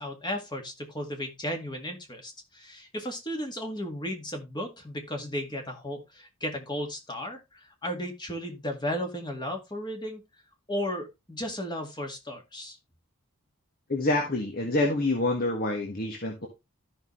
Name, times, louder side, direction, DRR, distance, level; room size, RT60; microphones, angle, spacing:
voice 1, 0.0-10.2 10.7-12.8, equal, 20° left, 3 dB, 2.0 m, -34 dB
voice 2, 13.9-16.5, left 2 dB, 40° left, 2 dB, 1.6 m, -27 dB
13.5 x 5.7 x 3.2 m, 0.24 s
head